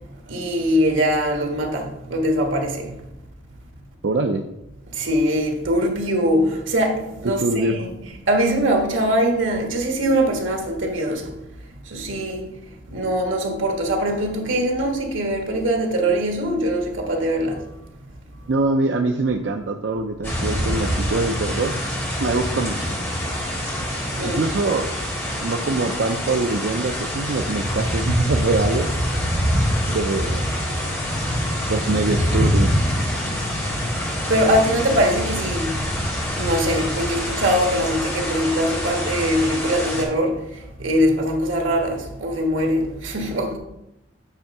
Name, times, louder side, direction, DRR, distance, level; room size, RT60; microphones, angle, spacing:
voice 1, 0.3-3.0 4.9-7.9 8.3-11.3 11.9-12.5 12.9-17.7 24.2-24.4 25.3-25.4 33.6-33.8 34.3-35.8 36.4-43.6, equal, 85° right, 1.5 m, -22 dB
voice 2, 4.0-4.4 7.2-7.8 18.5-21.8 22.2-22.9 24.2-24.9 25.4-29.0 29.9-30.5 31.7-33.0, right 3 dB, 60° right, 0.5 m, -23 dB
sound 1, 20.2-40.0, equal, 10° left, 1.6 m, -25 dB
8.1 x 3.5 x 5.9 m
head